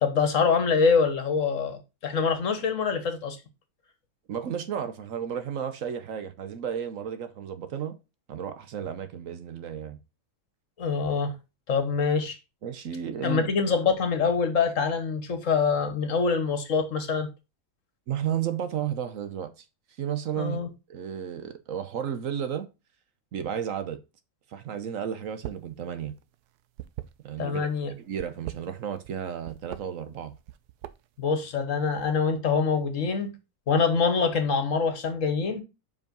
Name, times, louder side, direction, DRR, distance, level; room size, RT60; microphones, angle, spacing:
voice 1, 0.0-3.4 10.8-11.3 11.7-12.4 13.2-17.3 20.4-20.7 27.4-27.9 31.2-33.3 33.7-35.6, left 5 dB, 60° left, 1.4 m, -25 dB
voice 2, 4.3-8.0 8.3-10.0 12.6-13.5 18.1-19.7 20.0-20.6 20.9-22.7 23.3-24.0 24.5-26.1 27.2-27.7 28.0-30.3, right 8 dB, 65° right, 1.1 m, -33 dB
sound 1, 25.3-25.7 26.0-27.6 28.1-29.2 29.4-29.8 30.3-31.2, right 14 dB, 85° right, 1.1 m, -40 dB
5.4 x 4.9 x 5.2 m
omnidirectional pair, 1.6 m